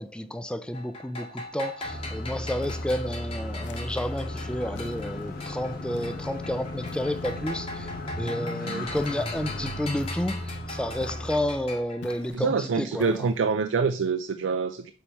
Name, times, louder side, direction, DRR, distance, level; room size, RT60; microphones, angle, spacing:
voice 1, 0.0-7.9 8.1-13.3, left 1 dB, 5° left, 0.4 m, -31 dB
sound 1, 0.7-5.8 6.0-12.3, left 2 dB, 30° left, 1.6 m, -41 dB
sound 2, 1.8-11.7, left 1 dB, 50° left, 1.5 m, -36 dB
sound 3, 2.6-3.1 3.6-4.2 4.7-5.4 5.9-6.3 6.8-7.4 9.0-9.4 10.0-10.5 11.0-11.5 12.0-12.5 13.0-13.5, left 4 dB, 65° left, 0.5 m, -47 dB
voice 2, 8.6-8.9 12.3-14.9, right 5 dB, 85° right, 0.4 m, -26 dB
7.0 x 3.2 x 5.5 m
head